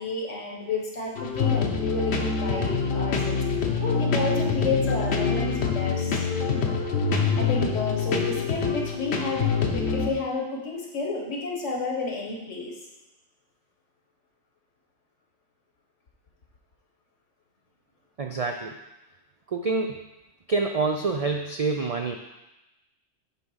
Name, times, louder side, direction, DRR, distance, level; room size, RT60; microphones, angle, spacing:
voice 1, 0.0-3.4 3.7-6.2 7.3-12.8, left 3 dB, 80° left, -1 dB, 1.6 m, -31 dB
sound 1, 1.2-10.1, left 5 dB, 65° left, 1.1 m, -25 dB
voice 2, 18.2-18.7 19.5-20.0 20.5-22.2, right 4 dB, 65° right, 3 dB, 0.3 m, -27 dB
8.0 x 3.6 x 5.6 m, 0.99 s
omnidirectional pair, 1.2 m